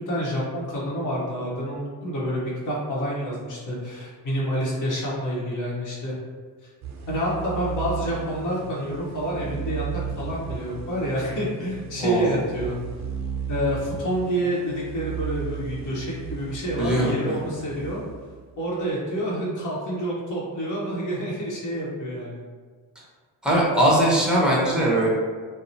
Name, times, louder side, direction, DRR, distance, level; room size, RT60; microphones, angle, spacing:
voice 1, 0.0-6.1 7.1-12.8 13.5-18.0 18.6-22.4, equal, 40° left, -5 dB, 0.9 m, -28 dB
sound 1, 6.8-18.7, right 7 dB, 35° right, 0.5 m, -35 dB
voice 2, 12.0-12.4 16.8-17.4 23.4-25.1, right 1 dB, ahead, -5 dB, 0.9 m, -21 dB
2.8 x 2.0 x 2.6 m, 1.5 s
supercardioid pair, 65°, 48 cm